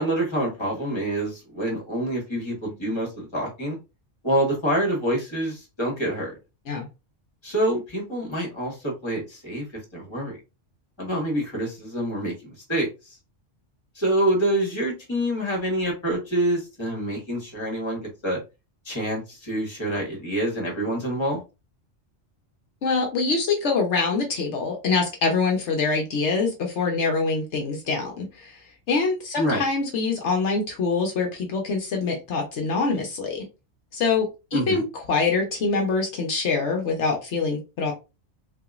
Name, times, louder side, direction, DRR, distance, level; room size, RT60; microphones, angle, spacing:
voice 1, 0.0-3.8 4.2-6.4 7.4-9.6 9.9-10.4 11.0-12.9 13.9-18.4 18.8-21.4 29.4-29.6 34.5-34.8, right 1 dB, 25° left, -1 dB, 1.5 m, -26 dB
voice 2, 22.8-28.6 28.9-33.4 33.9-37.9, left 4 dB, 70° left, 2 dB, 1.1 m, -24 dB
4.0 x 2.9 x 2.4 m, 0.27 s
omnidirectional pair, 1.2 m